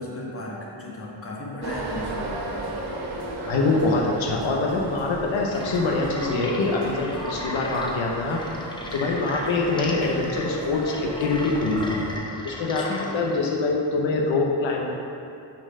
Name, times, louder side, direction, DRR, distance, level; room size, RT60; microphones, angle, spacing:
voice 1, 0.0-2.3 12.8-13.1, left 2 dB, 30° left, -3 dB, 1.2 m, -35 dB
sound 1, 1.6-12.2, right 2 dB, 55° right, 1.1 m, -35 dB
voice 2, 3.5-8.4 8.9-12.0 12.4-15.0, left 3 dB, 85° left, -1 dB, 0.9 m, -24 dB
sound 2, 5.5-13.4, left 1 dB, 10° left, 0.7 m, -37 dB
6.2 x 4.4 x 5.2 m, 2.7 s
wide cardioid pair, 115°, 45 cm